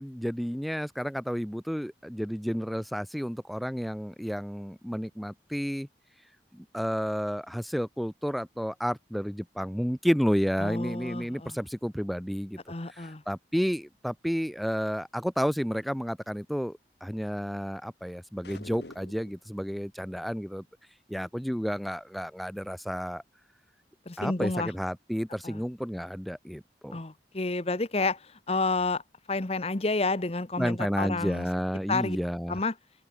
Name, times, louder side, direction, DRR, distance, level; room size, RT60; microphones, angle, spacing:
voice 1, 0.0-5.9 6.5-12.6 12.9-20.6 21.1-23.2 24.2-27.0 30.6-32.6, equal, ahead, 0.8 m, -31 dB
voice 2, 10.6-11.6 12.7-13.2 24.1-24.7 25.4-25.6 26.9-29.0 29.3-31.5 31.9-32.2 32.5-32.7, left 3 dB, 35° left, 1.1 m, -30 dB
sound 1, 18.4-19.5, left 2 dB, 70° left, 2.3 m, -46 dB
head